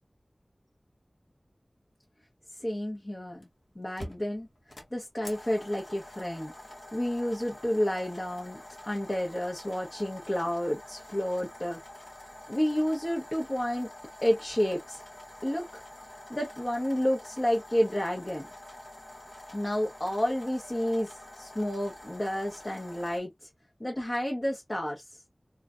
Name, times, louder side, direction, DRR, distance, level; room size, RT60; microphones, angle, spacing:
voice 1, 2.6-3.5 3.7-4.5 4.9-6.5 6.9-8.6 8.8-11.8 12.5-13.9 14.2-15.0 15.4-15.8 16.3-18.5 19.5-21.1 21.4-23.5 23.8-25.1, equal, 35° left, 0.9 m, -30 dB
sound 1, 3.4-3.5 4.0-23.2, left 1 dB, 65° left, 1.1 m, -47 dB
3.2 x 2.4 x 2.4 m
wide cardioid pair, 55°, 0 cm